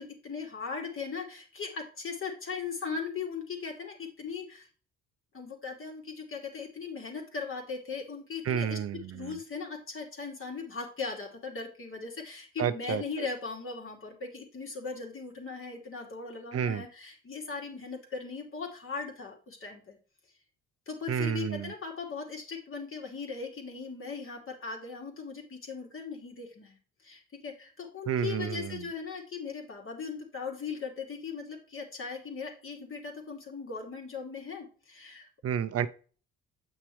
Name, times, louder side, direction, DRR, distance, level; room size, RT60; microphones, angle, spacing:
voice 1, 0.0-4.7 5.3-8.8 9.1-20.0 20.9-35.3, left 5 dB, 45° left, 1 dB, 2.8 m, -39 dB
voice 2, 8.4-9.4 12.6-13.3 16.5-16.8 21.1-21.7 28.1-28.8 35.4-35.9, right 8 dB, 55° right, 13 dB, 0.6 m, -31 dB
8.2 x 6.1 x 3.2 m, 0.39 s
cardioid pair, 90°, 30 cm